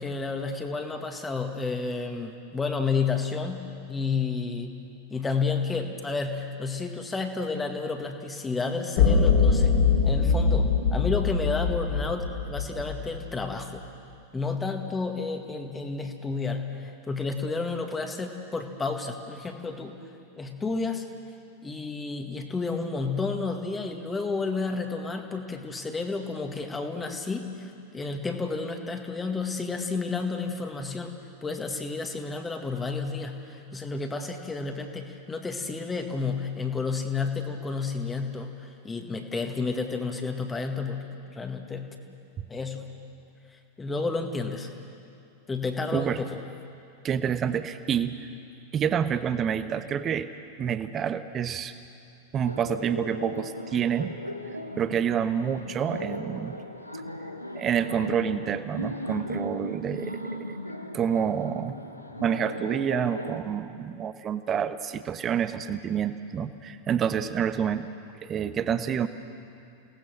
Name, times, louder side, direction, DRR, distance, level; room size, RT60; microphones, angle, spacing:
voice 1, 0.0-4.8 5.1-9.8 10.0-13.8 14.3-20.0 20.4-21.1 21.6-31.1 31.4-41.1 41.3-41.9 42.5-42.9 43.8-44.7 45.5-46.4, left 4 dB, 15° left, 4 dB, 1.9 m, -31 dB
sound 1, 9.0-13.3, left 5 dB, 55° left, 3.3 m, -23 dB
voice 2, 47.0-48.3 48.7-50.3 50.6-51.7 52.3-54.1 54.8-56.6 57.5-60.2 60.5-60.6 60.9-61.8 62.2-67.9 68.2-69.1, right 8 dB, 25° right, 11 dB, 1.1 m, -28 dB
Laughter, 52.5-63.4, left 1 dB, 90° left, 1.3 m, -37 dB
29.5 x 18.0 x 6.3 m, 2.6 s
figure-of-eight pair, 90°, 0 cm